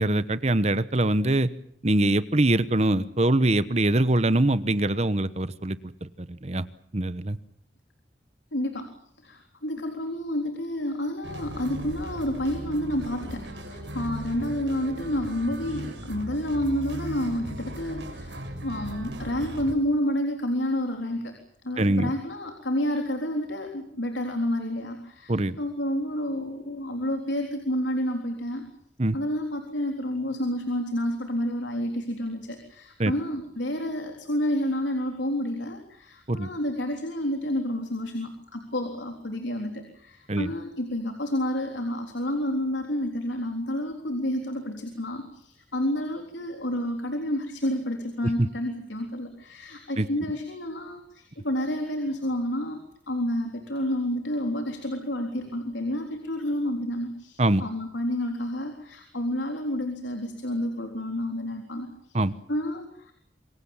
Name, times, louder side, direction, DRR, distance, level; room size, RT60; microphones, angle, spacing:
voice 1, 0.0-1.5 1.8-6.6 6.9-7.4 21.8-22.1 25.3-25.6 29.0-29.1 33.0-33.1 36.3-36.5 40.3-40.5 48.4-48.5 50.0-50.1 57.4-57.6 62.1-62.3, right 1 dB, 35° right, 14 dB, 1.1 m, -23 dB
voice 2, 8.5-8.9 9.2-21.4 21.6-28.6 29.1-62.2 62.5-63.1, left 1 dB, 90° left, 4 dB, 3.8 m, -30 dB
sound 1, 11.2-19.7, equal, 80° right, 6.4 m, -37 dB
27.0 x 23.0 x 7.3 m, 0.66 s
head